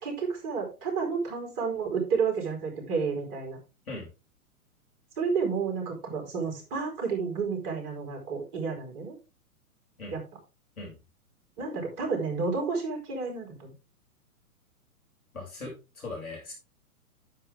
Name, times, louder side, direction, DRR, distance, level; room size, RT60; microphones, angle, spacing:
voice 1, 0.0-3.6 5.2-9.1 10.1-10.2 11.6-13.7, right 5 dB, 40° right, 1 dB, 4.7 m, -31 dB
voice 2, 15.3-16.5, left 2 dB, 65° left, -1 dB, 6.2 m, -39 dB
10.0 x 7.9 x 3.5 m, 0.29 s
figure-of-eight pair, 115°, 45 cm